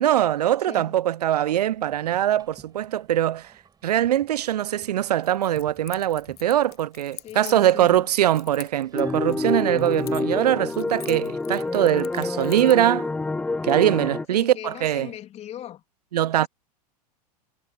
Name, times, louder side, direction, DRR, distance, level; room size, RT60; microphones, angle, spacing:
voice 1, 0.0-3.5 3.8-13.1 13.6-15.1 16.1-16.5, right 12 dB, 70° right, 0.5 m, -22 dB
voice 2, 0.6-1.0 7.2-8.1 14.3-15.8 16.3-16.5, left 11 dB, 30° left, 2.9 m, -39 dB
sound 1, 1.5-11.4, right 6 dB, 20° right, 6.0 m, -56 dB
Keys jangling, 5.2-8.0 8.3-10.4 10.7-12.9, left 14 dB, 65° left, 1.0 m, -44 dB
sound 2, 8.9-14.3, left 3 dB, 5° left, 0.4 m, -27 dB
figure-of-eight pair, 95°, 21 cm